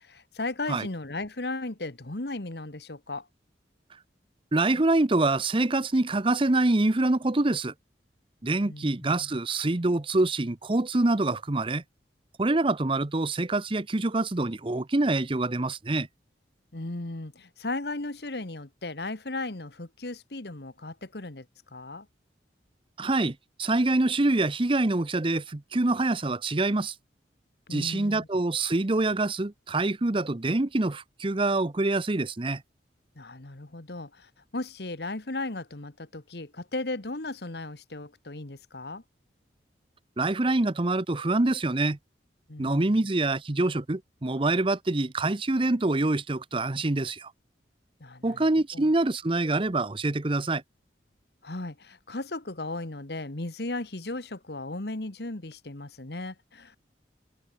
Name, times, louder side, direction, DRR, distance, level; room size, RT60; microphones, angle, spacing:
voice 1, 0.0-3.3 8.6-8.9 9.2-9.3 16.7-21.4 21.7-22.1 27.7-28.3 33.1-39.0 42.5-43.0 48.0-48.5 48.7-48.9 51.4-56.8, left 2 dB, 60° left, 1.6 m, -36 dB
voice 2, 4.5-7.7 8.4-11.8 12.4-16.1 23.0-26.9 27.7-32.6 40.2-42.0 42.6-47.3 48.2-50.6, right 2 dB, 30° right, 0.8 m, -25 dB
head